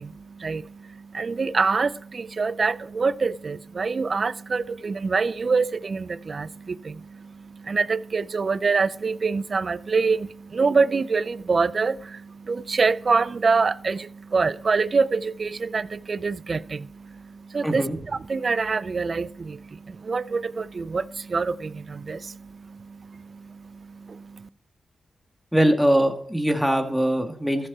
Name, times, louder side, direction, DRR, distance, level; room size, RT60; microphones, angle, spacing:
voice 1, 0.0-17.8 18.3-24.5, right 4 dB, 55° right, 0.5 m, -26 dB
voice 2, 17.6-18.0 25.5-27.7, equal, ahead, 2.2 m, -22 dB
14.0 x 6.8 x 4.3 m
supercardioid pair, 40°, 0 cm